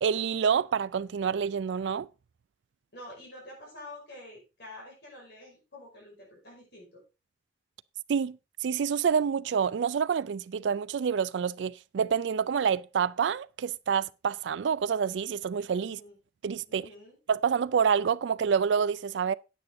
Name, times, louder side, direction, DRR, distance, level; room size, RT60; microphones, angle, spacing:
voice 1, 0.0-2.1 8.1-16.0 16.4-16.9 17.3-19.3, right 7 dB, 80° right, 0.4 m, -27 dB
voice 2, 2.9-7.0 15.8-16.2 16.7-17.2, left 1 dB, 65° left, 5.4 m, -48 dB
9.1 x 8.7 x 3.7 m
head